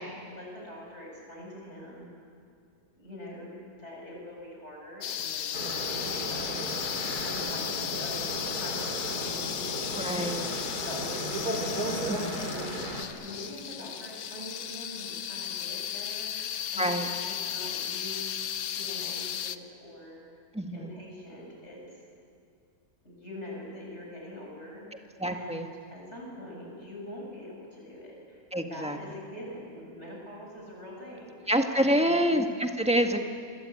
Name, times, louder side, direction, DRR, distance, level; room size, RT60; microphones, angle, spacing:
voice 1, 0.0-2.1 2.9-7.7 8.0-12.8 13.2-18.4 18.8-20.2 20.7-22.0 23.0-25.5 25.9-31.5 31.8-32.2, left 1 dB, 40° left, -2 dB, 8.2 m, -44 dB
sound 1, 5.0-19.6, left 9 dB, 65° left, 1.3 m, -35 dB
sound 2, 5.5-13.0, right 1 dB, 65° right, 3.8 m, -35 dB
voice 2, 10.0-10.4 12.1-12.4 16.8-17.1 20.5-20.9 25.2-25.7 28.5-29.0 31.5-33.2, equal, 5° right, 4 dB, 1.7 m, -27 dB
27.0 x 23.0 x 9.2 m, 2.3 s
omnidirectional pair, 1.8 m